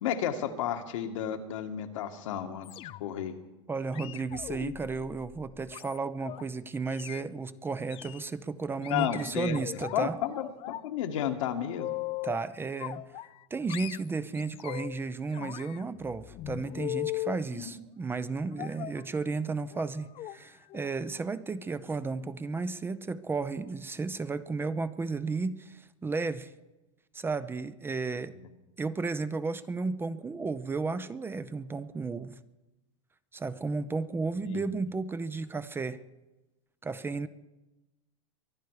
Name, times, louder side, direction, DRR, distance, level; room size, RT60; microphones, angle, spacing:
voice 1, 0.0-2.7 3.0-3.4 8.9-9.6 9.9-11.9 17.7-17.8 34.4-34.7, left 9 dB, 75° left, 6 dB, 1.7 m, -32 dB
sound 1, 2.6-3.3 3.9-6.4 6.9-7.2 7.9-8.2 8.8-10.0 10.3-10.9 11.2-12.4 12.8-13.4 13.7-15.0 15.3-17.4 18.6-19.0 19.7-19.9 20.2-20.4 20.7-20.9 21.2-21.3, left 16 dB, 35° left, 0.5 m, -39 dB
voice 2, 3.7-10.2 12.2-13.1 13.5-26.5 27.1-28.4 28.8-32.4 33.3-36.1 36.8-37.3, right 4 dB, 15° right, 14 dB, 0.6 m, -33 dB
23.5 x 10.5 x 4.8 m, 1.0 s
hypercardioid pair, 120°, 16 cm